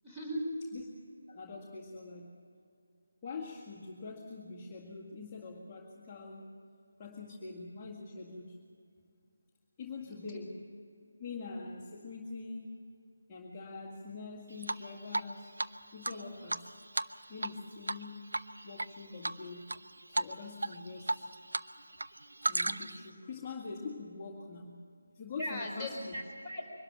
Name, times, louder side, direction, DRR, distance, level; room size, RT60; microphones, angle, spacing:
voice 1, 0.0-0.5 10.1-10.2 25.4-26.7, equal, 5° right, -5 dB, 4.3 m, -38 dB
voice 2, 1.3-2.4 3.2-6.5 7.0-8.6 9.8-10.6 11.2-12.9 13.3-15.5 15.9-16.7 17.3-18.3 18.6-19.7 20.1-21.3 22.4-24.8 25.1-26.2, left 4 dB, 15° left, -7 dB, 2.0 m, -44 dB
Drip, 14.6-15.3 15.6-15.7 16.0-17.6 17.8-18.0 18.3-18.9 19.2-19.8 20.1-20.3 20.6-21.7 21.9-23.0, right 2 dB, 65° right, 0.7 m, -33 dB
23.5 x 13.0 x 9.4 m, 2.4 s
figure-of-eight pair, 155°, 0 cm